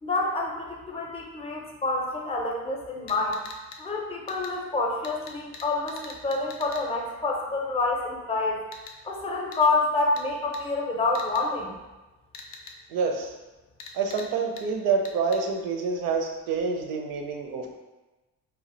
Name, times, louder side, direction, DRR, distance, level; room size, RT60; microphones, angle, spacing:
voice 1, 0.0-3.4 3.8-8.6 9.0-11.7, left 3 dB, 20° left, 0 dB, 0.5 m, -27 dB
sound 1, 3.1-3.8 4.3-4.5 5.0-6.8 8.7-8.9 9.5-9.6 10.2-10.3 10.5-10.6 11.1-11.4 12.3-12.7 13.8-14.3 14.6-14.7 15.0-15.4, left 4 dB, 85° left, 0.5 m, -42 dB
voice 2, 12.9-13.3 13.9-17.8, right 5 dB, 80° right, 2 dB, 0.6 m, -27 dB
2.4 x 2.1 x 3.8 m, 1.1 s
cardioid pair, 85°, 32 cm